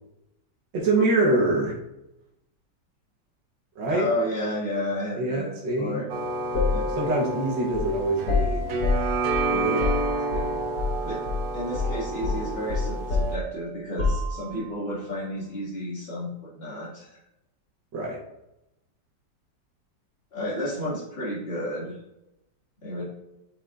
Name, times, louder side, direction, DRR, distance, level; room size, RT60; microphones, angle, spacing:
voice 1, 0.7-1.7 3.8-4.1 5.2-6.0 6.8-8.8 9.5-10.6 17.9-18.2, right 2 dB, 85° right, -3 dB, 1.8 m, -25 dB
voice 2, 3.9-5.5 5.8-6.0 6.7-6.8 11.0-11.2 11.5-17.2 20.3-21.9 22.8-23.0, left 1 dB, 35° left, -7 dB, 2.4 m, -31 dB
sound 1, 6.1-13.4, right 2 dB, 65° right, 1.1 m, -30 dB
sound 2, 6.5-11.0 11.3-11.5 11.7-14.7, left 3 dB, 75° left, 2.8 m, -28 dB
9.0 x 4.2 x 2.5 m, 0.89 s
omnidirectional pair, 1.9 m